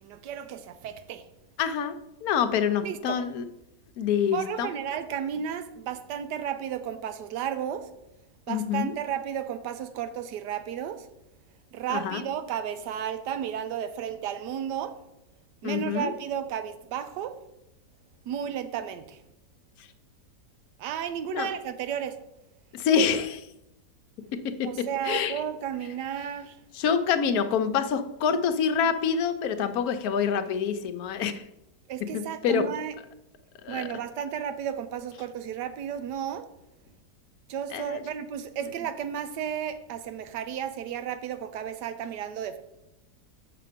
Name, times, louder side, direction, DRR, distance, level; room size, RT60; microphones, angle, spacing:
voice 1, 0.0-1.2 2.8-3.2 4.3-7.9 8.5-11.1 11.7-15.0 15.6-17.4 18.3-19.2 20.8-22.2 24.6-26.6 31.9-32.9 33.7-36.5 37.5-42.6, right 9 dB, 85° right, 10 dB, 1.2 m, -33 dB
voice 2, 1.6-1.9 2.2-3.4 4.0-4.7 8.5-8.9 11.9-12.2 15.6-16.1 21.3-21.5 22.7-23.5 24.6-25.4 26.7-31.4 32.1-32.6 33.6-33.9 37.7-38.0, left 7 dB, 70° left, 9 dB, 1.1 m, -26 dB
6.8 x 5.8 x 5.0 m, 0.87 s
omnidirectional pair, 1.8 m